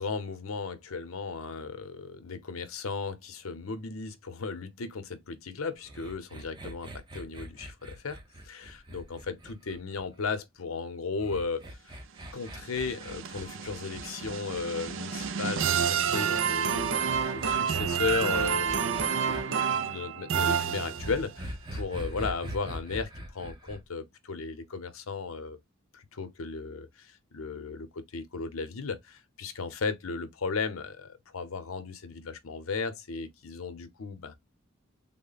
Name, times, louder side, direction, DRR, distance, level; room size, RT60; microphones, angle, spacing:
voice 1, 0.0-8.2 8.4-11.9 12.3-17.0 17.3-25.6 25.9-34.3, left 4 dB, 85° left, 0.7 m, -35 dB
sound 1, 5.8-10.2 11.2-15.3 16.7-19.4 21.0-23.8, equal, 20° right, 0.8 m, -42 dB
sound 2, 12.4-21.3, right 7 dB, 65° right, 0.5 m, -29 dB
3.6 x 2.1 x 3.9 m
head